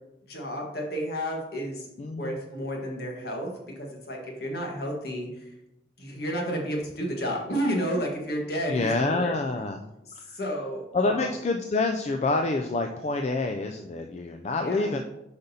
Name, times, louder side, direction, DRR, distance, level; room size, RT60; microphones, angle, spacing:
voice 1, 0.2-1.9 2.2-5.5 6.0-9.3 10.1-11.3 14.6-15.0, equal, 60° left, 0 dB, 1.4 m, -31 dB
voice 2, 2.0-2.4 8.7-9.8 10.1-10.4 10.9-15.0, left 3 dB, 40° left, 5 dB, 0.3 m, -27 dB
7.9 x 5.1 x 2.7 m, 0.89 s
head